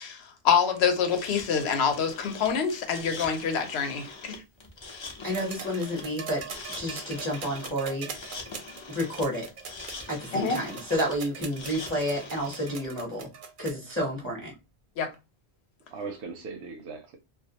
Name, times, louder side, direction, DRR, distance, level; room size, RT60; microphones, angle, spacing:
voice 1, 0.0-4.4 10.3-10.6 15.0-15.1, left 6 dB, 85° left, 0.9 m, -26 dB
sound 1, 1.0-12.9, left 3 dB, 40° left, 0.4 m, -43 dB
voice 2, 5.2-6.4 6.8-8.4 8.9-9.5 10.1-13.3 13.6-14.5, equal, 15° left, 0.7 m, -30 dB
sound 2, 5.3-13.9 15.1-15.2, right 6 dB, 60° right, 0.6 m, -42 dB
voice 3, 15.9-17.2, right 4 dB, 85° right, 0.8 m, -40 dB
2.3 x 2.2 x 2.7 m
omnidirectional pair, 1.1 m